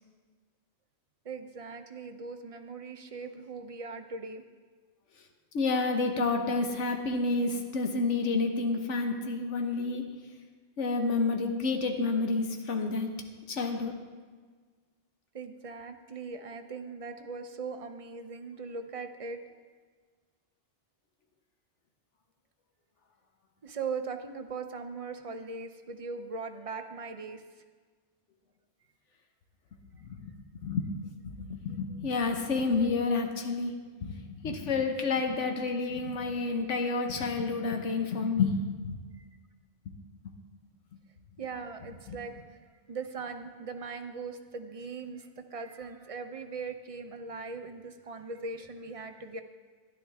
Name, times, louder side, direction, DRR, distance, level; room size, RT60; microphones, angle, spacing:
voice 1, 1.2-4.4 15.3-19.5 23.6-27.4 39.2-39.3 41.4-42.6 42.9-49.4, right 4 dB, 40° right, 7 dB, 0.5 m, -40 dB
voice 2, 5.5-10.1 10.8-13.1 13.5-13.9 30.0-30.9 31.2-33.7 34.0-38.9 42.1-42.2, left 3 dB, 90° left, 4 dB, 1.3 m, -29 dB
12.0 x 10.5 x 3.5 m, 1.5 s
omnidirectional pair, 1.2 m